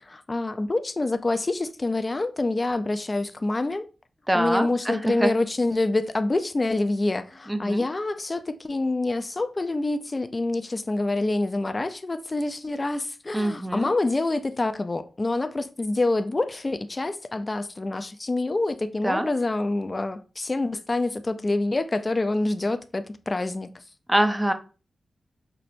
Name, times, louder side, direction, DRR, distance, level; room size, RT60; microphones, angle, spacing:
voice 1, 0.0-3.9 4.3-23.7, left 2 dB, 35° left, 0.4 m, -26 dB
voice 2, 4.3-5.3 7.5-7.9 13.3-13.9 19.0-19.3 24.1-24.5, right 1 dB, 10° right, 0.6 m, -24 dB
5.5 x 2.1 x 2.6 m
cardioid pair, 50°, 0 cm